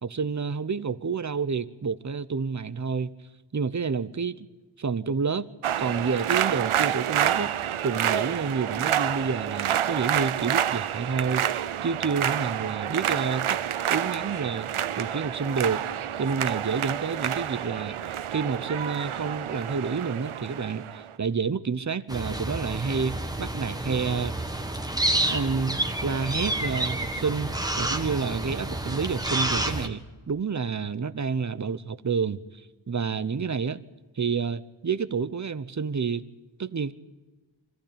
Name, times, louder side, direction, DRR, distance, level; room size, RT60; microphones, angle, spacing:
voice 1, 0.0-3.1 3.5-4.5 4.8-5.5 5.8-7.5 7.8-13.6 13.9-14.7 15.0-15.8 16.2-24.4 25.3-32.4 32.9-33.8 34.2-36.2 36.6-36.9, right 5 dB, 35° right, 0.8 m, -29 dB
sound 1, 5.6-21.1, right 10 dB, 90° right, 0.8 m, -28 dB
sound 2, 22.1-29.9, right 1 dB, 10° right, 1.6 m, -29 dB
25.0 x 15.0 x 8.8 m
wide cardioid pair, 105°, 48 cm